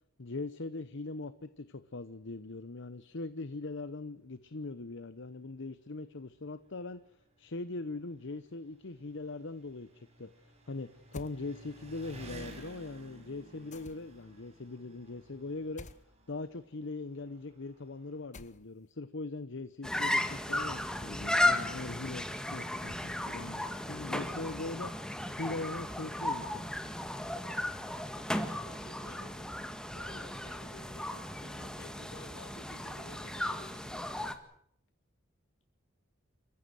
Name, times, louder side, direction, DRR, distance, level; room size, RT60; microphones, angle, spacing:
voice 1, 0.2-7.0 7.4-15.9 16.3-26.7, left 3 dB, 65° left, 14 dB, 0.9 m, -41 dB
Engine, 3.7-3.8 4.2-4.3 5.2-5.3 5.5-18.3, right 1 dB, 35° right, 6.5 m, -55 dB
sound 1, 11.1-11.4 13.7-14.2 15.8-16.0 18.3-18.9, left 2 dB, 35° left, 1.1 m, -47 dB
sound 2, 19.8-34.4, left 1 dB, 5° left, 1.8 m, -35 dB
voice 2, 28.4-29.4 29.9-34.2, left 1 dB, 80° left, 5 dB, 6.6 m, -53 dB
29.5 x 15.5 x 7.8 m, 0.72 s
head